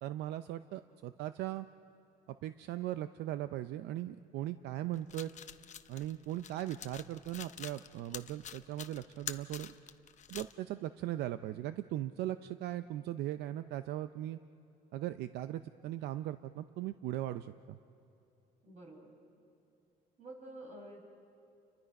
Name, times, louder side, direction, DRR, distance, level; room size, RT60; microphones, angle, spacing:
voice 1, 0.0-1.7 2.3-5.3 5.9-9.8 10.3-14.4 14.9-17.8, right 13 dB, 80° right, 11 dB, 0.6 m, -39 dB
sound 1, 4.9-10.5, left 9 dB, 45° left, 0.8 m, -47 dB
voice 2, 18.6-19.2 20.2-21.0, right 1 dB, 45° right, 1 dB, 5.3 m, -49 dB
30.0 x 23.0 x 5.3 m, 2.6 s
cardioid pair, 110°, 17 cm